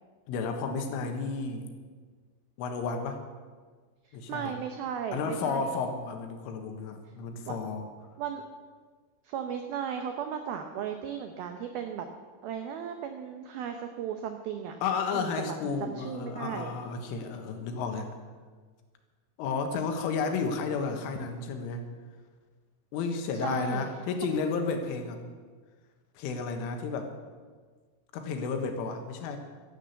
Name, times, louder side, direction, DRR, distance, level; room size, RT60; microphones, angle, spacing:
voice 1, 0.3-1.7 2.6-3.2 4.1-4.5 5.1-7.8 14.8-18.1 19.4-21.9 22.9-25.2 26.2-27.1 28.1-29.4, left 5 dB, 85° left, 5 dB, 3.9 m, -32 dB
voice 2, 4.3-5.7 7.5-7.6 8.2-8.4 9.2-12.1 12.4-14.8 15.1-15.3 15.6-16.8 23.4-23.8, right 8 dB, 90° right, 6 dB, 2.1 m, -35 dB
13.5 x 11.0 x 8.2 m, 1.5 s
omnidirectional pair, 5.6 m